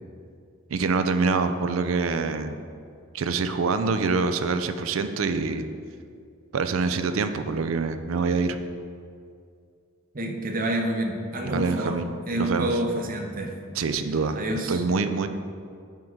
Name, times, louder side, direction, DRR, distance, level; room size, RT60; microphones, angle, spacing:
voice 1, 0.7-2.5 3.1-5.6 6.5-8.6 11.5-12.8 13.7-14.4 14.7-15.3, right 4 dB, 80° right, 9 dB, 0.5 m, -25 dB
voice 2, 10.1-12.0 12.3-13.6 14.4-14.8, right 1 dB, 45° right, 3 dB, 0.8 m, -28 dB
10.5 x 3.7 x 4.5 m, 2.3 s
head